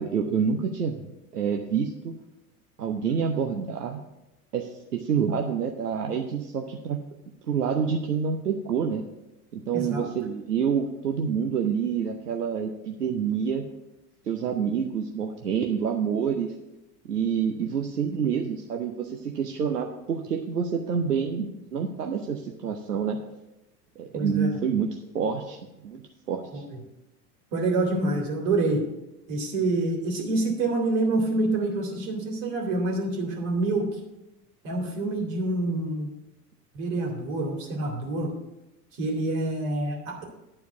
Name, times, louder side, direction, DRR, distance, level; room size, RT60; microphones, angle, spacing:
voice 1, 0.0-2.2 2.8-4.0 4.5-7.0 7.5-9.0 9.5-13.7 14.2-16.5 17.0-23.2 24.0-25.6 25.8-26.6, right 7 dB, 85° right, 2 dB, 0.8 m, -27 dB
voice 2, 9.7-10.1 24.1-24.6 26.5-26.6 27.5-28.8 29.3-33.9 34.6-36.1 36.7-38.3 38.9-40.2, right 2 dB, 60° right, 1 dB, 2.6 m, -27 dB
11.0 x 4.6 x 7.0 m, 0.96 s
figure-of-eight pair, 70°, 46 cm